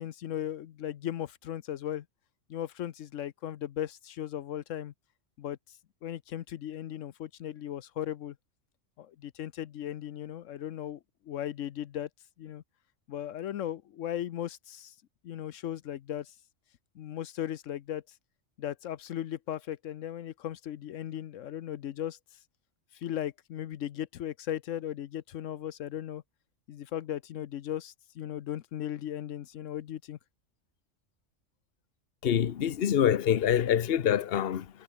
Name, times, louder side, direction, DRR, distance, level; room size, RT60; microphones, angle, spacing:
voice 1, 0.0-2.0 2.5-4.9 5.4-5.6 6.0-8.3 9.0-11.0 11.3-12.1 12.4-12.6 13.1-14.9 15.2-16.3 17.0-18.0 18.6-22.2 22.9-26.2 26.7-30.2, left 11 dB, 85° left, 1.1 m, -37 dB
voice 2, 32.2-34.7, left 9 dB, 55° left, 1.0 m, -25 dB
omnidirectional pair, 1.3 m